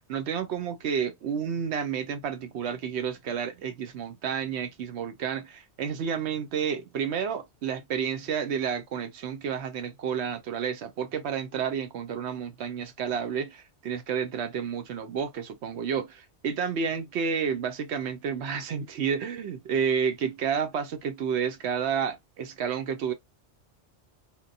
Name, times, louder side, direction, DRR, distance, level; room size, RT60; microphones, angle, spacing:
voice 1, 0.1-23.1, right 7 dB, 75° right, 0.9 m, -30 dB
2.9 x 2.2 x 2.6 m
omnidirectional pair, 1.2 m